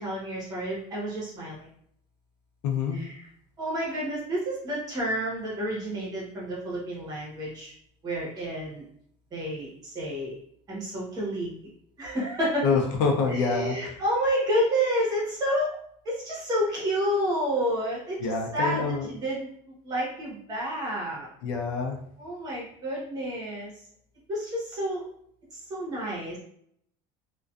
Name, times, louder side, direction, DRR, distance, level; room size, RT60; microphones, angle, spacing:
voice 1, 0.0-1.7 2.9-3.2 3.6-7.7 8.0-8.8 9.3-10.4 10.7-11.6 12.0-12.6 13.3-15.8 16.0-21.3 22.2-23.7 24.3-25.0 25.5-26.4, equal, 25° right, -5 dB, 0.9 m, -30 dB
voice 2, 2.6-3.1 12.6-13.9 18.2-19.1 21.4-22.0, left 5 dB, 70° left, 1 dB, 0.5 m, -26 dB
2.4 x 2.2 x 2.5 m, 0.66 s
cardioid pair, 165°, 16 cm